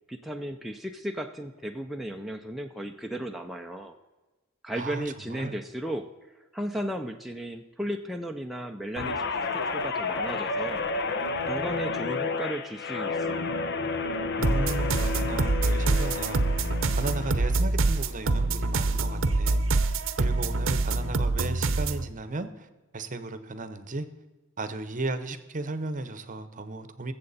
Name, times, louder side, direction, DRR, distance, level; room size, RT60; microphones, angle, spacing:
voice 1, 0.1-4.0 4.6-6.1 6.5-9.2 9.5-10.8 11.4-13.5, right 1 dB, ahead, 2 dB, 0.5 m, -35 dB
voice 2, 4.8-5.6 14.4-16.6 17.0-19.6 20.2-22.7 22.9-24.1 24.6-27.1, right 2 dB, 40° right, 11 dB, 0.9 m, -35 dB
Guitar, 9.0-17.6 17.9-18.3, left 3 dB, 55° left, 0.9 m, -31 dB
sound 1, 14.4-22.0, right 3 dB, 70° right, 0.7 m, -25 dB
21.5 x 7.7 x 4.2 m, 1.2 s
head